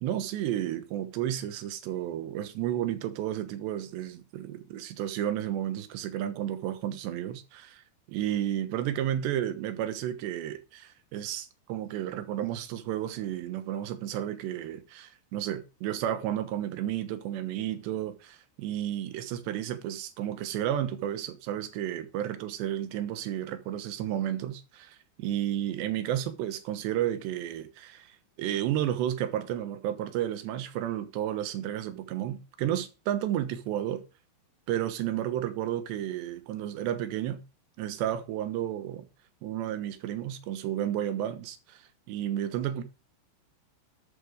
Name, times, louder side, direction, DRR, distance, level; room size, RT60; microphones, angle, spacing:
voice 1, 0.0-7.8 8.1-34.0 34.7-37.4 37.8-39.1 39.4-41.8 42.1-42.8, right 11 dB, 80° right, 3.3 m, -32 dB
12.5 x 7.3 x 5.0 m
omnidirectional pair, 5.1 m